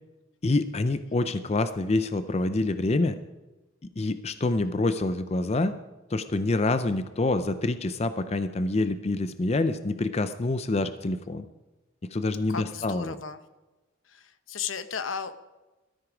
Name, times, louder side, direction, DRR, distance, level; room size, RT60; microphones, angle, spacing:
voice 1, 0.4-3.2 4.0-5.7 6.1-11.4 12.1-13.2, left 2 dB, 30° left, 11 dB, 0.5 m, -26 dB
voice 2, 12.5-13.4 14.1-15.4, left 6 dB, 75° left, 12 dB, 0.9 m, -35 dB
18.5 x 13.0 x 5.0 m, 1.1 s
head